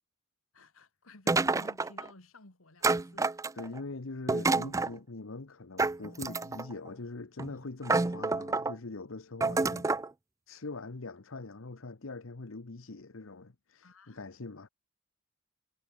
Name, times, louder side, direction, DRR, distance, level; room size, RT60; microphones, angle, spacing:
voice 1, 0.5-3.3 13.8-14.2, left 2 dB, 85° left, 2.8 m, -54 dB
sound 1, 1.3-2.1 2.8-3.8 4.3-4.9 5.8-6.7 7.4-7.5 7.8-8.7 9.4-10.1, right 3 dB, 15° right, 0.4 m, -28 dB
voice 2, 3.5-9.9 10.5-14.7, left 3 dB, 70° left, 1.0 m, -43 dB
head